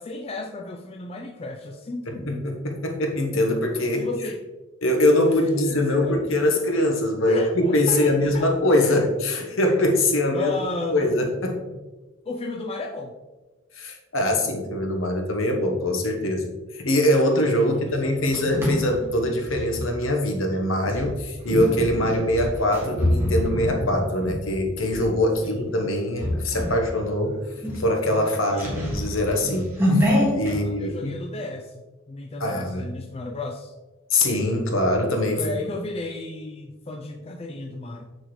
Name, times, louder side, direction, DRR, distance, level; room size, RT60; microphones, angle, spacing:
voice 1, 0.0-2.4 4.0-4.4 5.5-6.3 7.3-9.0 10.3-11.1 12.3-13.1 17.6-18.5 25.4-25.6 28.5-28.8 30.5-33.7 35.4-38.1, left 2 dB, 30° left, 3 dB, 0.4 m, -33 dB
voice 2, 2.1-4.1 4.8-10.5 10.9-11.8 13.8-16.5 16.7-27.4 27.7-31.1 32.4-32.8 34.1-35.4, left 1 dB, 65° left, 2 dB, 1.1 m, -23 dB
sound 1, 17.9-19.9 20.8-25.1 25.5-25.8 26.2-26.8 27.2-27.3 27.6-30.5, left 1 dB, 10° right, 1.9 m, -26 dB
6.5 x 6.3 x 3.1 m, 1.2 s
head